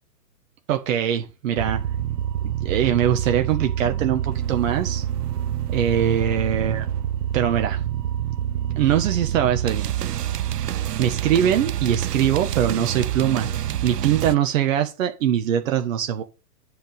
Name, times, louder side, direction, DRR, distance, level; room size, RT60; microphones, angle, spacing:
voice 1, 0.7-1.8 2.6-5.0 5.7-6.8 7.3-7.9 8.8-9.9 11.0-13.5 13.8-16.2, right 9 dB, 50° right, 1.6 m, -22 dB
sound 1, 1.6-14.4, right 10 dB, 70° right, 0.8 m, -27 dB
10.5 x 5.2 x 6.5 m
hypercardioid pair, 125°, 49 cm